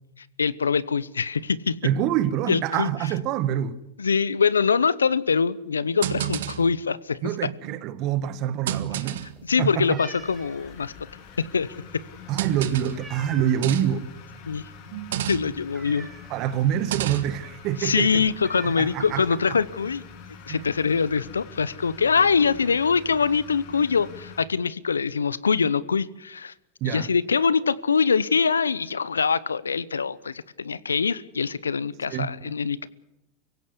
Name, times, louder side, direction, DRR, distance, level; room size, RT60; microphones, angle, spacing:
voice 1, 0.4-1.8 2.5-2.9 4.0-7.5 9.5-10.9 11.4-11.7 11.9-12.0 14.5-14.6 15.3-16.1 17.8-20.0 20.5-26.5 26.8-32.9, left 5 dB, 90° left, 0.8 m, -24 dB
voice 2, 1.8-3.8 7.2-9.2 9.6-10.0 12.3-14.1 16.3-18.2 18.8-19.2 20.5-20.6 26.8-27.1 32.1-32.5, right 10 dB, 50° right, 1.5 m, -26 dB
sound 1, 6.0-6.8 7.6-7.9 8.7-9.4 10.4-10.5 12.4-13.0 13.6-14.1 14.9-15.7 16.7-17.4, right 11 dB, 70° right, 1.5 m, -30 dB
sound 2, 9.1-13.8 14.2-14.5 14.8-14.9 15.3-16.6 17.0-17.1 17.4-17.6 17.9-18.0 18.4-19.6 20.4-20.5 20.8-21.2, right 3 dB, 15° right, 4.1 m, -45 dB
sound 3, 10.1-24.4, left 5 dB, 55° left, 4.2 m, -45 dB
24.5 x 16.5 x 8.2 m
hypercardioid pair, 90°, 0 cm